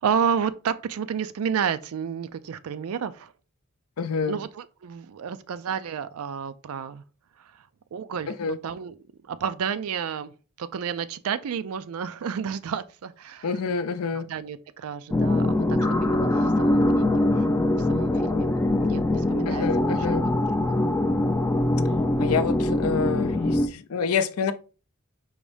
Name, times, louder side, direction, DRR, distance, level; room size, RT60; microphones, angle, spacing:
voice 1, 0.0-3.3 4.3-7.0 7.9-9.0 9.3-13.6 14.1-17.1 17.4-20.4 20.7-20.8, right 7 dB, 70° right, 0.4 m, -31 dB
voice 2, 4.0-4.4 8.4-8.6 13.4-14.3 19.5-20.2 22.2-24.5, left 5 dB, 75° left, 0.5 m, -27 dB
sound 1, 15.1-23.7, left 1 dB, 10° left, 0.3 m, -23 dB
4.8 x 2.6 x 3.3 m
head